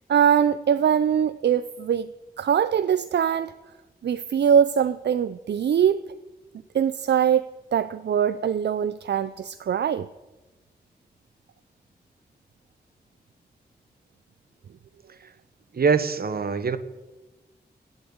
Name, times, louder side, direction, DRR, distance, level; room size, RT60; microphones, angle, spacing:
voice 1, 0.1-2.1 2.4-3.5 4.0-6.0 6.7-7.4 7.7-10.1, right 8 dB, 80° right, 14 dB, 0.5 m, -22 dB
voice 2, 15.7-16.8, right 5 dB, 60° right, 13 dB, 1.1 m, -23 dB
18.5 x 8.2 x 8.7 m, 1.1 s
cardioid pair, 65°, 18 cm